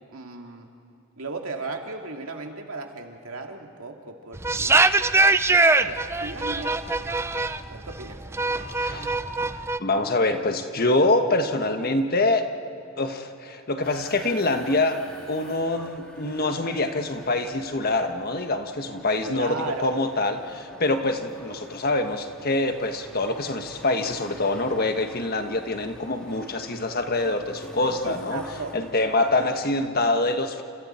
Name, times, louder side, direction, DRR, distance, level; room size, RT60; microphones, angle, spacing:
voice 1, 0.1-0.7 1.2-4.8 5.8-6.7 7.6-9.3 19.3-20.0 28.0-28.7, right 3 dB, 75° right, 3 dB, 2.3 m, -36 dB
sound 1, 4.4-9.8, right 3 dB, 10° right, 0.4 m, -22 dB
voice 2, 8.8-9.1 9.8-12.4 13.0-15.0 15.3-28.4 28.7-30.6, left 2 dB, 45° left, 6 dB, 1.4 m, -25 dB
sound 2, 13.8-29.8, equal, 5° left, 2.9 m, -47 dB
29.5 x 28.0 x 4.4 m, 2.8 s
head